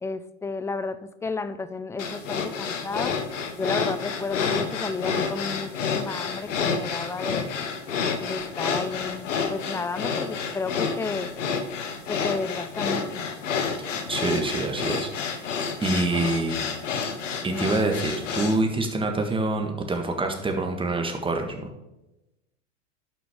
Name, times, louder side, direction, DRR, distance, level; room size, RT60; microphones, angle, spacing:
voice 1, 0.0-3.2 3.6-7.5 8.2-11.3 12.1-13.2, left 4 dB, 10° left, 13 dB, 0.3 m, -32 dB
sound 1, 2.0-18.6, left 6 dB, 85° left, 1.3 m, -29 dB
voice 2, 13.8-15.1 15.8-16.6 17.4-21.7, right 2 dB, 15° right, 4 dB, 1.7 m, -26 dB
11.0 x 6.2 x 3.7 m, 0.95 s
hypercardioid pair, 100°, 37 cm